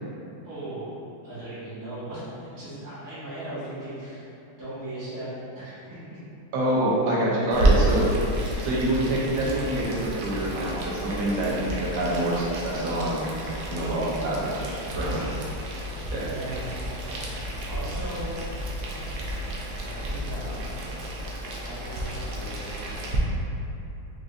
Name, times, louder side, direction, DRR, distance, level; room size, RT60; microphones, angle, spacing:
voice 1, 0.4-0.9 1.2-4.3 4.6-6.2 7.4-7.8 8.5-8.7 10.6-11.3 13.4-13.9 16.2-16.7 17.7-18.3 18.9-19.0 19.8-20.6 21.6-22.8, right 1 dB, 20° right, -14 dB, 0.5 m, -39 dB
voice 2, 6.5-8.0 8.6-13.2 13.7-15.3 16.1-16.3, right 1 dB, 75° right, -6 dB, 1.5 m, -26 dB
Boiling, 7.5-23.2, right 1 dB, 90° right, 0.8 m, -30 dB
4.9 x 2.6 x 2.4 m, 2.8 s
omnidirectional pair, 2.3 m